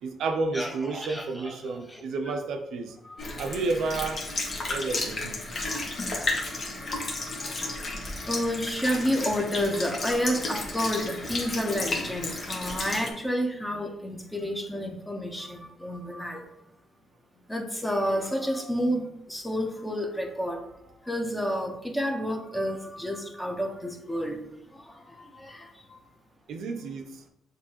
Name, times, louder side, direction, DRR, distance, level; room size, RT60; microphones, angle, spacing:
voice 1, 0.0-3.0 3.4-4.2 4.7-5.4 26.5-27.2, right 3 dB, 75° right, 4 dB, 0.5 m, -31 dB
voice 2, 0.5-1.5 1.9-2.0 3.0-3.2 5.6-5.9 6.5-16.4 17.5-24.4 24.7-26.0, equal, 10° left, 3 dB, 0.8 m, -31 dB
Sink (filling or washing) / Liquid, 3.2-13.1, left 2 dB, 40° left, 1.2 m, -33 dB
6.8 x 2.7 x 2.9 m, 0.82 s
cardioid pair, 95°, 0 cm